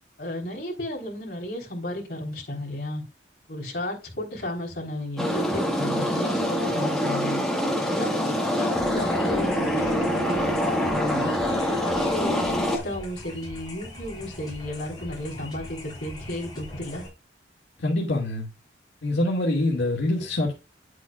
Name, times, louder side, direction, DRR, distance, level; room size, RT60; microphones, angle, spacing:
voice 1, 0.2-3.0 3.5-7.4 7.8-11.4 11.9-17.1, left 1 dB, 60° left, 3.9 m, -33 dB
sound 1, 5.2-12.8, equal, ahead, 1.9 m, -25 dB
sound 2, 8.7-17.1, left 1 dB, 20° left, 5.2 m, -41 dB
voice 2, 17.8-18.5 19.0-20.6, left 2 dB, 90° left, 2.4 m, -25 dB
10.0 x 8.1 x 2.5 m
head